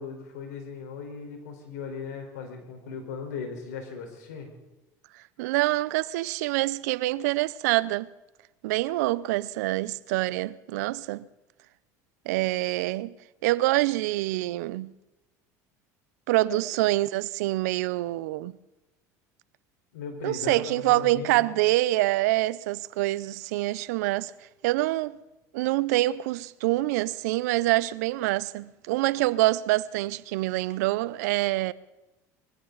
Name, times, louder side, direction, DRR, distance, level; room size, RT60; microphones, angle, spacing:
voice 1, 0.0-4.5 16.5-16.6 19.9-21.6, left 5 dB, 85° left, 4.3 m, -38 dB
voice 2, 5.4-8.1 8.6-11.3 12.3-13.1 13.4-14.9 16.3-18.5 20.2-24.3 24.6-25.2 25.5-31.7, right 18 dB, 80° right, 0.6 m, -26 dB
22.0 x 15.5 x 4.0 m
supercardioid pair, 90°, 9 cm